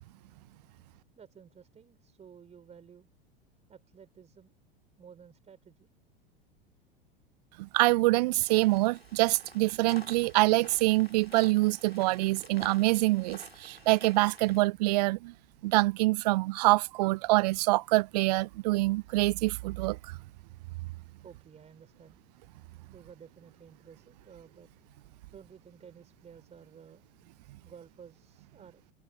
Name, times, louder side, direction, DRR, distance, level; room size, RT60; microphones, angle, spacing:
voice 1, 1.2-3.1 3.7-4.5 5.0-5.9 21.2-22.2 22.9-24.7 25.3-27.0 27.6-28.8, right 7 dB, 25° right, 4.7 m, -53 dB
voice 2, 7.6-15.3 15.6-20.0, right 21 dB, 45° right, 0.4 m, -25 dB
sound 1, 8.4-14.6, left 1 dB, 90° left, 3.6 m, -51 dB
figure-of-eight pair, 85°, 29 cm